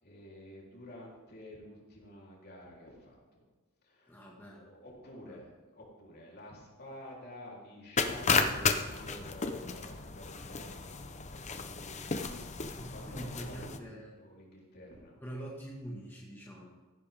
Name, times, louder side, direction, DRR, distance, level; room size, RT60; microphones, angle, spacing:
voice 1, 0.0-3.4 3.8-11.0 11.4-15.2, left 1 dB, 50° left, -3 dB, 3.4 m, -51 dB
voice 2, 4.1-4.7 5.3-5.4 12.8-14.1 15.2-16.7, right 1 dB, 10° left, -3 dB, 1.6 m, -44 dB
sound 1, 8.0-13.8, left 4 dB, 30° left, 0.7 m, -33 dB
15.0 x 11.5 x 3.5 m, 1.2 s
head